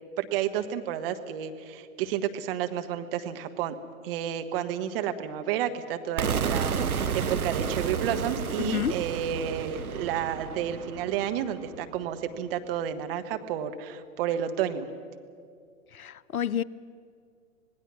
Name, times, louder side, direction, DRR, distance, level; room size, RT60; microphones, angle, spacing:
voice 1, 0.2-3.7 4.0-14.9, right 9 dB, 40° right, 1.4 m, -31 dB
sound 1, 6.2-12.0, right 6 dB, 85° right, 0.9 m, -31 dB
voice 2, 8.6-9.0 15.9-16.6, left 9 dB, 80° left, 0.6 m, -29 dB
26.0 x 19.0 x 6.3 m
figure-of-eight pair, 110°, 43 cm